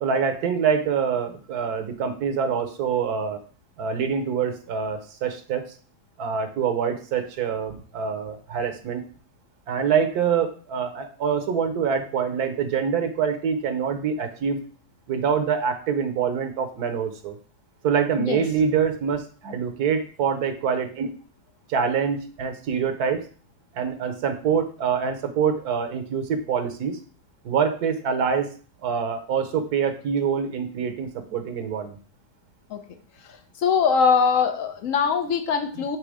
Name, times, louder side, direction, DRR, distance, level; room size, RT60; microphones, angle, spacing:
voice 1, 0.0-3.4 3.8-5.6 6.2-9.0 9.7-14.6 15.1-17.4 17.8-21.1 21.7-23.2 23.7-27.0 27.4-28.5 28.8-32.0 35.8-35.9, right 6 dB, 90° right, 9 dB, 1.4 m, -25 dB
voice 2, 33.6-36.0, left 6 dB, 60° left, 6 dB, 1.2 m, -22 dB
7.5 x 3.4 x 4.8 m, 0.41 s
omnidirectional pair, 1.6 m